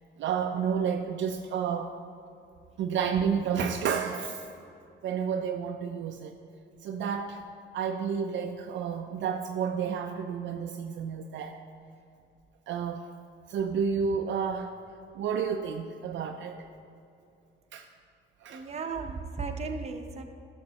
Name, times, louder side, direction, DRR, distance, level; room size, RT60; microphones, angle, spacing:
voice 1, 0.2-1.9 2.8-4.5 5.0-6.3 6.8-7.4 7.7-11.6 12.7-13.1 13.5-14.7 15.2-16.7 17.7-17.9 18.4-18.6, right 7 dB, 70° right, 4 dB, 0.5 m, -30 dB
voice 2, 18.5-20.2, right 4 dB, 35° right, 4 dB, 0.8 m, -35 dB
12.5 x 6.7 x 2.9 m, 2.7 s
cardioid pair, 90°, 20 cm